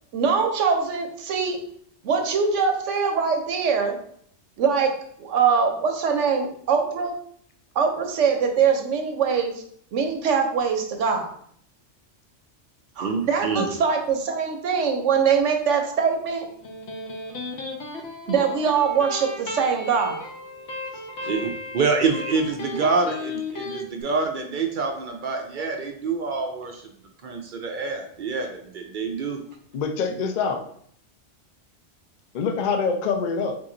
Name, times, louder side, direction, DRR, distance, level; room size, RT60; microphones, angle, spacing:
voice 1, 0.1-1.6 2.0-4.0 4.6-4.9 5.2-7.1 7.7-9.5 9.9-11.3 13.0-16.4 18.3-20.2, right 6 dB, 90° right, 4 dB, 1.1 m, -22 dB
voice 2, 13.0-13.7 21.2-21.5 21.7-26.8 27.2-29.4, right 4 dB, 60° right, 3 dB, 0.5 m, -26 dB
Electric guitar, 16.4-23.8, left 2 dB, 70° left, 1.0 m, -35 dB
voice 3, 29.7-30.6 32.3-33.5, left 5 dB, 55° left, 6 dB, 0.5 m, -25 dB
3.7 x 2.9 x 3.7 m, 0.64 s
omnidirectional pair, 1.2 m